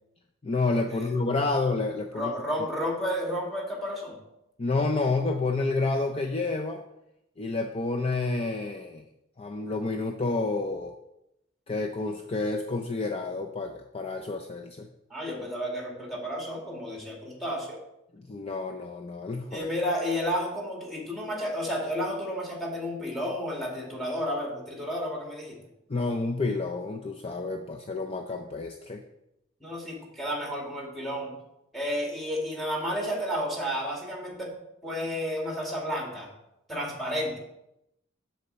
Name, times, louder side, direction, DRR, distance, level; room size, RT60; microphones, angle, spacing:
voice 1, 0.4-2.3 4.6-6.8 7.4-9.0 9.4-10.9 11.7-14.9 18.1-19.7 25.9-29.0, left 3 dB, 30° left, 3 dB, 0.5 m, -29 dB
voice 2, 2.1-4.2 15.1-17.8 19.5-25.6 29.6-31.3 31.7-34.5 34.8-36.3 36.7-37.4, equal, ahead, -1 dB, 1.9 m, -31 dB
7.1 x 4.3 x 6.7 m, 0.85 s
head